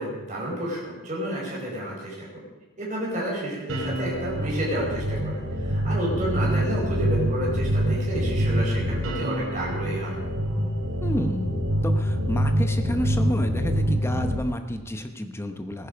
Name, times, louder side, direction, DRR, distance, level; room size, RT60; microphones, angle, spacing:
voice 1, 0.0-2.4 2.8-10.2, right 1 dB, 35° right, -4 dB, 5.0 m, -30 dB
sound 1, 3.7-14.4, equal, 65° right, 3.4 m, -25 dB
voice 2, 11.0-15.9, equal, 10° left, 6 dB, 0.9 m, -30 dB
18.5 x 10.5 x 5.2 m, 1.1 s
head